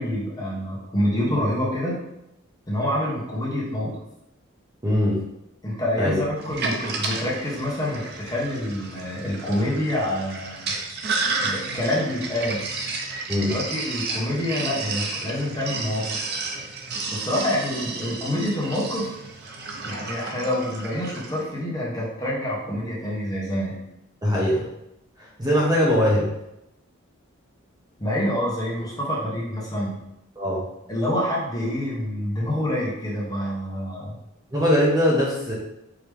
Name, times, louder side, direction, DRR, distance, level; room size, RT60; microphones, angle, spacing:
voice 1, 0.0-2.0 2.7-4.0 5.6-10.7 11.4-12.7 13.4-16.2 17.1-19.1 19.8-23.7 28.0-30.0 30.9-34.2, left 1 dB, 20° left, -5 dB, 1.1 m, -27 dB
voice 2, 4.8-5.2 6.0-6.1 13.3-13.5 24.2-24.7 25.2-26.3 30.4-30.6 34.5-35.5, equal, 20° right, -5 dB, 1.0 m, -21 dB
Sink (filling or washing), 6.4-21.4, right 3 dB, 50° right, 0.7 m, -32 dB
4.8 x 3.0 x 3.4 m, 0.86 s
head